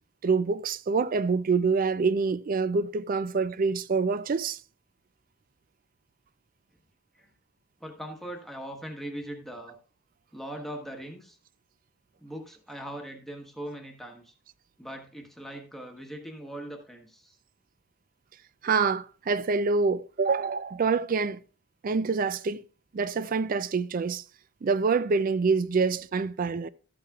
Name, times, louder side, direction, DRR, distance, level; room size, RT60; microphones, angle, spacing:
voice 1, 0.2-4.6 18.6-21.4 21.8-22.6 22.9-24.2 24.6-26.7, right 4 dB, 40° right, 0.4 m, -26 dB
voice 2, 7.8-9.8 10.3-11.4 12.2-14.3 14.8-17.4, right 1 dB, ahead, 1.1 m, -40 dB
13.0 x 8.6 x 2.4 m
head